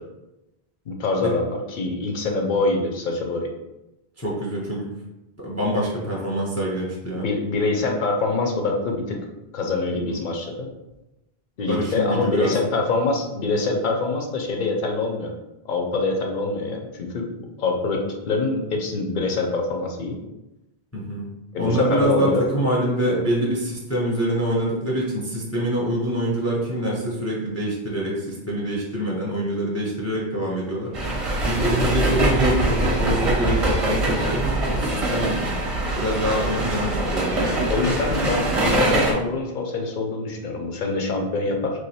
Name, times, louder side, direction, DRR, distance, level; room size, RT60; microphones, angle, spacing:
voice 1, 0.9-3.5 7.1-9.2 9.5-10.7 11.6-15.3 15.7-18.0 18.3-20.2 21.5-22.4 37.7-41.8, left 3 dB, 55° left, 2 dB, 0.7 m, -25 dB
voice 2, 4.2-4.9 5.4-7.2 9.9-10.2 11.7-12.6 20.9-21.3 21.6-30.9 31.4-35.3 36.0-37.5, right 1 dB, 15° left, -4 dB, 0.6 m, -25 dB
sound 1, 30.9-39.1, right 1 dB, 35° right, 0.7 m, -23 dB
3.1 x 2.5 x 4.2 m, 0.96 s
omnidirectional pair, 1.1 m